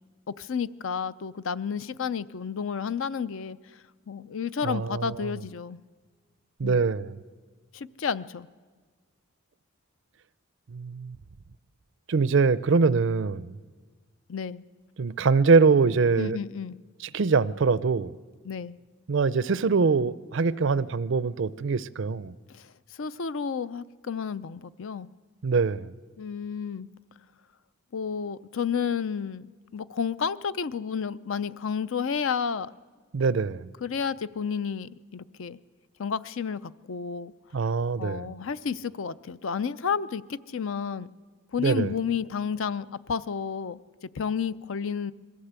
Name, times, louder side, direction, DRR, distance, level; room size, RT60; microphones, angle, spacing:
voice 1, 0.4-3.6 4.1-5.8 6.6-6.8 7.7-8.5 14.3-14.6 16.2-16.8 18.4-18.8 22.5-22.7 23.0-25.1 26.2-26.9 27.9-32.7 33.8-35.6 36.0-37.3 38.0-41.1 41.5-43.8 44.1-45.1, left 6 dB, 60° left, 0.5 m, -31 dB
voice 2, 4.6-5.3 6.6-7.2 10.7-11.2 12.1-13.6 15.0-16.4 17.1-18.1 19.1-22.3 25.4-25.9 33.1-33.7 37.5-38.3 41.6-41.9, right 4 dB, 55° right, 0.5 m, -23 dB
22.0 x 15.0 x 8.2 m
head